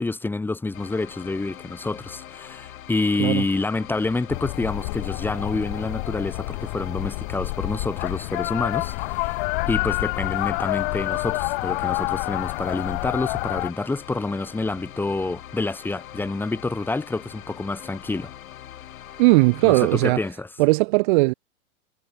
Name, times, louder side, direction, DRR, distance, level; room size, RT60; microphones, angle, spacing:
voice 1, 0.0-18.3 19.6-20.5, left 3 dB, 5° left, 3.6 m, -28 dB
sound 1, 0.7-20.1, left 11 dB, 70° left, 5.3 m, -43 dB
sound 2, 4.3-13.7, left 26 dB, 40° left, 4.5 m, -28 dB
voice 2, 19.2-20.3 20.6-21.3, right 25 dB, 35° right, 1.4 m, -18 dB
supercardioid pair, 165°, 43 cm